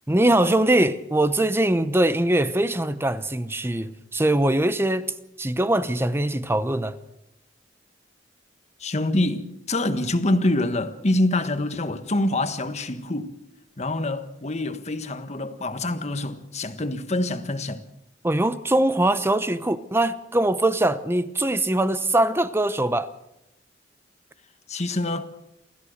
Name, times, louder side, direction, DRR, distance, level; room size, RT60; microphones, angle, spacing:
voice 1, 0.1-5.1 5.4-7.0 18.2-23.1, right 1 dB, 15° right, 0.8 m, -22 dB
voice 2, 8.8-13.3 13.8-17.8 24.7-25.2, left 1 dB, 40° left, 1.4 m, -25 dB
28.5 x 14.0 x 6.5 m
head